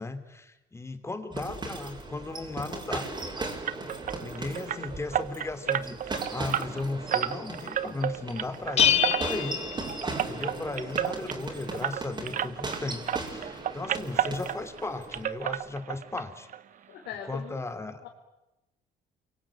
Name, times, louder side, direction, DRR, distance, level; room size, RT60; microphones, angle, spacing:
voice 1, 0.0-3.1 4.1-9.6 10.2-16.5 17.3-18.0, left 2 dB, 15° left, 10 dB, 3.1 m, -36 dB
sound 1, 1.3-15.2, right 3 dB, 25° right, 5.8 m, -38 dB
sound 2, 3.7-12.8 13.1-14.9 15.1-16.2 16.5-16.6 17.1-17.2 17.5-17.6, right 10 dB, 50° right, 1.1 m, -32 dB
Bell, 8.8-10.6, left 9 dB, 40° left, 1.5 m, -26 dB
voice 2, 16.9-17.6 18.0-18.1, left 9 dB, 85° left, 0 dB, 4.1 m, -42 dB
28.0 x 23.5 x 8.9 m, 0.99 s
cardioid pair, 110°, 17 cm